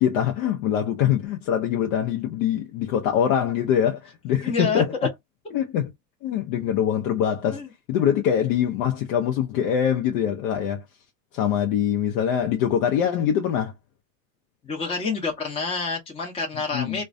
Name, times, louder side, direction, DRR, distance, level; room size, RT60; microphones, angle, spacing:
voice 1, 0.0-4.9 5.5-5.9 6.2-7.6 7.9-10.8 11.3-13.7 16.7-17.0, left 9 dB, 60° left, 0.7 m, -23 dB
voice 2, 4.4-4.8 7.5-7.7 14.6-17.0, left 4 dB, 15° left, 0.8 m, -28 dB
2.3 x 2.2 x 2.4 m
hypercardioid pair, 95°, 41 cm